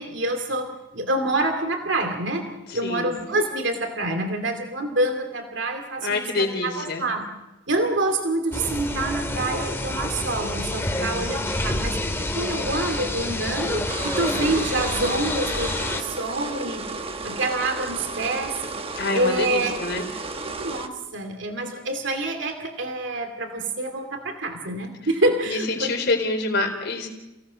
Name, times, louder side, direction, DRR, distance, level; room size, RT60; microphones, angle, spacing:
voice 1, 0.0-2.5 2.7-7.3 7.7-16.9 17.2-18.6 19.1-19.7 20.6-25.9, right 2 dB, 70° right, 5 dB, 2.5 m, -27 dB
voice 2, 2.7-3.1 6.0-7.0 10.9-11.2 14.5-14.6 19.0-20.0 25.5-27.1, left 2 dB, 60° left, 2 dB, 4.1 m, -26 dB
sound 1, 8.5-16.0, left 1 dB, 15° left, 1.9 m, -28 dB
sound 2, 13.9-20.9, right 3 dB, 30° right, 1.3 m, -33 dB
29.5 x 18.0 x 6.3 m, 1.0 s
head